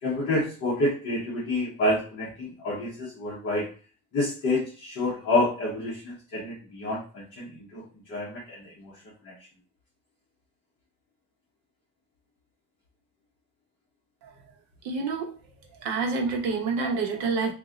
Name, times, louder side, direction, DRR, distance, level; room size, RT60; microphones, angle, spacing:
voice 1, 0.0-3.7 4.1-9.3, left 2 dB, 35° left, -7 dB, 1.2 m, -28 dB
voice 2, 14.8-15.3 15.8-17.5, right 4 dB, 60° right, 0 dB, 1.0 m, -28 dB
3.0 x 2.8 x 3.7 m, 0.38 s
cardioid pair, 180°, 30 cm